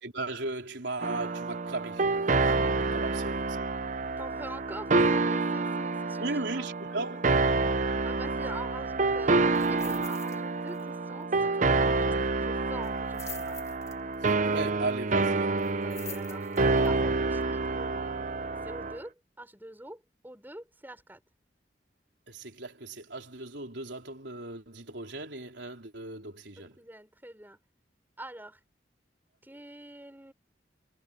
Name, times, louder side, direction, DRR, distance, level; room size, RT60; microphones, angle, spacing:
voice 1, 0.0-2.5 2.9-3.7 6.2-7.3 14.3-15.7 22.3-26.8, right 2 dB, 75° right, 3.9 m, -37 dB
sound 1, 1.0-19.0, right 3 dB, 45° right, 0.8 m, -28 dB
voice 2, 4.2-6.5 6.9-7.2 7.7-13.6 15.8-18.1 18.6-21.2 26.6-27.6 28.2-28.6 29.4-30.3, right 1 dB, 10° right, 6.6 m, -45 dB
sound 2, 9.5-10.4 10.7-10.9 11.2-11.3 12.8-14.3 15.6-16.9 17.4-17.5, left 5 dB, 15° left, 2.2 m, -45 dB
head